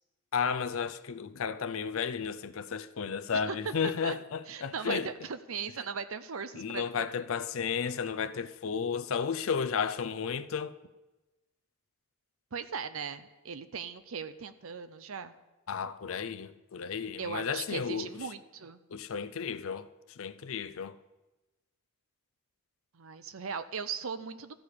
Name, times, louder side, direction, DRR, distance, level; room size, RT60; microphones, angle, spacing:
voice 1, 0.3-5.1 6.5-10.7 15.7-18.2 18.9-21.0, left 6 dB, 65° left, 0.5 m, -33 dB
voice 2, 3.3-4.2 4.5-7.3 12.5-15.3 17.2-18.8 22.9-24.5, right 6 dB, 65° right, 0.6 m, -38 dB
13.5 x 4.9 x 8.5 m
head